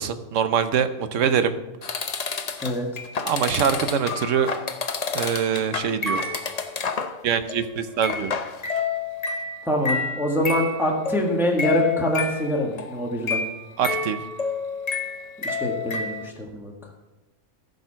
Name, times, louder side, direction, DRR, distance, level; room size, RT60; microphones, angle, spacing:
voice 1, 0.0-1.5 3.2-4.5 5.1-6.3 7.2-8.4 13.8-14.2, right 7 dB, 60° right, 10 dB, 1.0 m, -24 dB
sound 1, 1.8-7.2 7.5-7.7 8.0-16.3, left 4 dB, 50° left, 0.4 m, -29 dB
voice 2, 2.6-3.0 9.6-13.4 15.4-16.7, equal, ahead, 0 dB, 1.4 m, -25 dB
14.0 x 5.4 x 5.7 m, 1.0 s
omnidirectional pair, 1.6 m